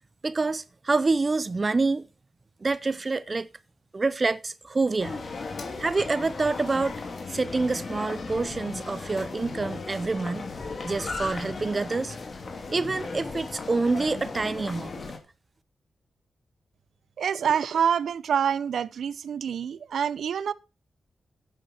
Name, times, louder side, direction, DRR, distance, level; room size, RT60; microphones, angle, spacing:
voice 1, 0.2-2.1 2.6-3.5 3.9-5.2 5.8-7.0 7.3-10.4 10.8-12.2 12.7-15.0, right 3 dB, 35° right, 0.5 m, -27 dB
sound 1, 5.0-15.2, left 4 dB, 55° left, 2.8 m, -36 dB
voice 2, 17.2-20.5, right 8 dB, 80° right, 0.6 m, -26 dB
11.0 x 9.0 x 4.4 m
cardioid pair, 75°, 0 cm